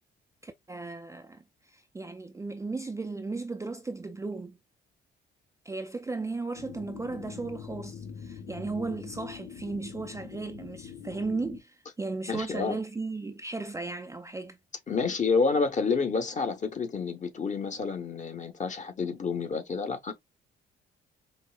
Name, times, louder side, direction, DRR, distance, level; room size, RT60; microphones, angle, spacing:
voice 1, 0.4-4.6 5.7-14.6, right 3 dB, 15° right, 0.4 m, -36 dB
sound 1, 6.5-11.6, left 7 dB, 85° left, 0.9 m, -43 dB
voice 2, 12.3-12.8 14.9-20.1, left 4 dB, 40° left, 1.0 m, -29 dB
5.3 x 2.1 x 2.3 m
cardioid pair, 90°, 20 cm